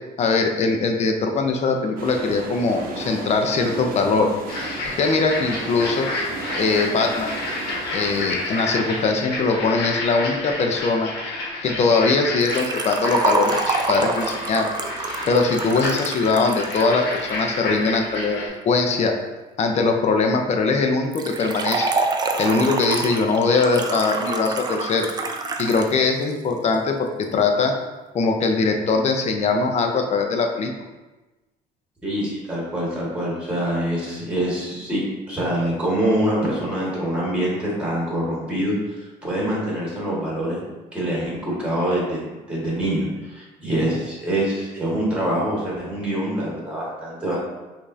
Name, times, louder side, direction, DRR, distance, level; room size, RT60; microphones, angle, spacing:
voice 1, 0.2-4.3 4.9-6.1 6.6-7.3 7.9-11.1 11.6-14.7 15.3-19.2 19.6-21.9 22.4-25.1 25.6-27.7 28.1-30.7, left 4 dB, 40° left, 4 dB, 0.5 m, -21 dB
sound 1, 2.0-11.8 12.1-12.2, right 3 dB, 55° right, 0.7 m, -36 dB
sound 2, 4.5-18.5, left 2 dB, 75° left, 1.1 m, -30 dB
Liquid, 12.4-17.4 21.1-25.9 26.2-26.3 27.2-27.3, right 4 dB, 25° right, 0.3 m, -27 dB
voice 2, 32.0-35.0 35.3-40.6 40.9-42.2 42.5-47.4, right 1 dB, 5° right, -5 dB, 1.5 m, -25 dB
5.1 x 2.5 x 2.6 m, 1.1 s
cardioid pair, 110°, 17 cm